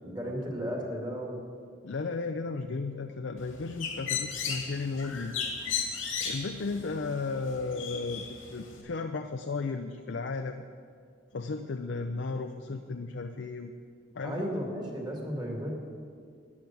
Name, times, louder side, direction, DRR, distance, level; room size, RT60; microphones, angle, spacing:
voice 1, 0.0-1.4 14.2-15.7, equal, 20° right, 0 dB, 2.1 m, -34 dB
voice 2, 1.8-5.5 6.2-10.6 11.3-13.7 14.1-14.5, left 3 dB, 60° left, 6 dB, 0.5 m, -34 dB
Bird, 3.4-8.8, left 6 dB, 85° left, 2.2 m, -36 dB
13.5 x 9.8 x 6.1 m, 2.2 s
head